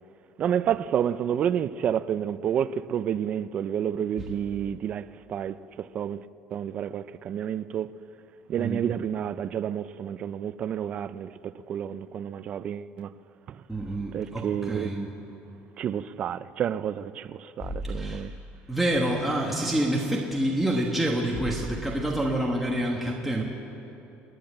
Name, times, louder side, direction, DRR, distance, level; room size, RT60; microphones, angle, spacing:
voice 1, 0.4-6.2 6.5-7.9 8.5-13.1 13.5-13.6 14.1-14.9 15.8-18.3, right 9 dB, 30° right, 0.4 m, -30 dB
voice 2, 8.6-8.9 13.7-15.1 17.8-18.2 18.7-23.4, right 1 dB, 5° right, 1.4 m, -27 dB
29.0 x 10.5 x 9.0 m
cardioid pair, 175°, 4 cm